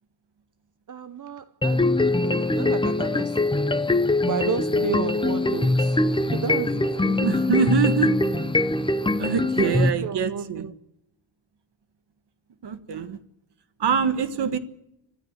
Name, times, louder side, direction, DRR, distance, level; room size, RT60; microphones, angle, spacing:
voice 1, 0.9-3.6 4.2-7.2 9.6-10.7, right 7 dB, 45° right, 0.9 m, -33 dB
sound 1, 1.6-9.9, left 2 dB, 10° left, 0.8 m, -22 dB
voice 2, 7.2-8.1 9.2-10.7 12.6-13.2 13.8-14.6, right 6 dB, 70° right, 1.6 m, -24 dB
25.5 x 13.0 x 8.0 m
wide cardioid pair, 135°, 43 cm